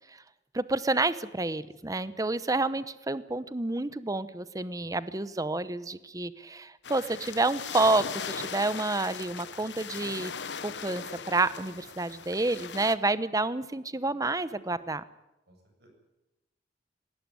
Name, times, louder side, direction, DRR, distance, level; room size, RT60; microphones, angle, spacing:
voice 1, 0.5-10.3 10.6-15.0, right 2 dB, 20° right, 15 dB, 0.8 m, -29 dB
voice 2, 1.8-2.1 4.8-5.0 14.6-14.7 15.5-15.9, right 1 dB, 65° right, 3 dB, 7.7 m, -62 dB
sound 1, 6.8-12.9, left 6 dB, 80° left, 1.1 m, -39 dB
20.0 x 18.0 x 9.8 m, 0.96 s
head